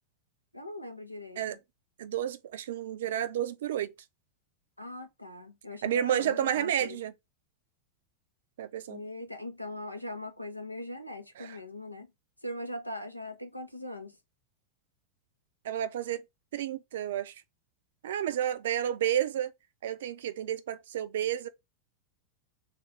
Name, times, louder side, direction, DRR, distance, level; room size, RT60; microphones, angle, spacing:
voice 1, 0.5-1.6 4.8-7.0 8.9-12.1 12.4-14.1, left 1 dB, 90° left, 0.5 m, -40 dB
voice 2, 2.0-3.9 5.8-7.1 8.6-9.0 11.4-11.6 15.6-16.2 16.5-17.3 18.0-19.5 19.8-21.5, right 10 dB, 60° right, 0.4 m, -31 dB
3.4 x 2.5 x 2.7 m
figure-of-eight pair, 90°, 0 cm